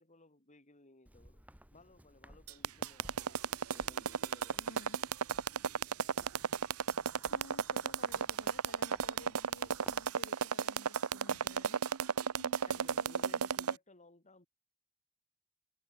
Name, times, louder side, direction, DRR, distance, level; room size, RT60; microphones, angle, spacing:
voice 1, 0.0-1.4 1.7-4.7 12.3-14.5, left 2 dB, 35° left, 5.0 m, -60 dB
Walk footsteps, 1.1-10.1, equal, 5° right, 5.4 m, -60 dB
sound 1, 2.5-13.7, right 6 dB, 80° right, 0.8 m, -33 dB
voice 2, 4.6-5.0 7.3-11.8 12.4-13.5, left 2 dB, 60° left, 2.4 m, -55 dB
head